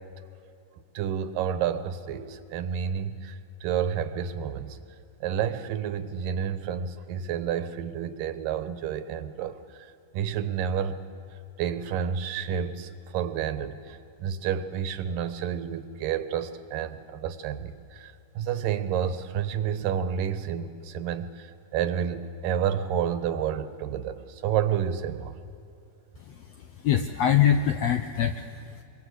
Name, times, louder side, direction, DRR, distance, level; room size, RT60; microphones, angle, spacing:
voice 1, 0.9-4.8 5.2-11.0 11.6-25.3, right 8 dB, 80° right, 12 dB, 2.7 m, -30 dB
voice 2, 26.2-28.8, left 9 dB, 75° left, 8 dB, 1.5 m, -25 dB
24.5 x 23.5 x 8.1 m, 2.7 s
omnidirectional pair, 3.9 m